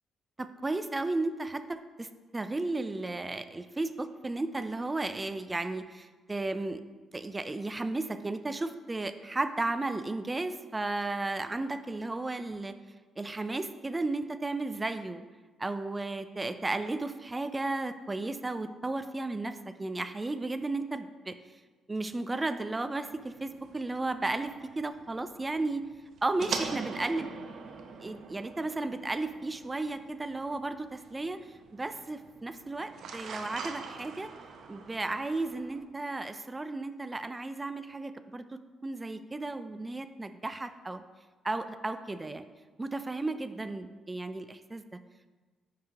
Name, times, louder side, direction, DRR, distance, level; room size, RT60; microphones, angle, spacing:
voice 1, 0.4-6.8 7.1-12.7 13.2-15.2 15.6-21.4 21.9-25.9 26.2-27.3 28.0-31.4 31.7-34.3 34.7-41.0 41.4-42.4 42.8-45.0, right 2 dB, 20° right, 10 dB, 0.5 m, -34 dB
sound 1, 23.1-35.8, right 5 dB, 70° right, 0.8 m, -44 dB
9.4 x 5.7 x 2.9 m, 1.3 s
cardioid pair, 90°, 0 cm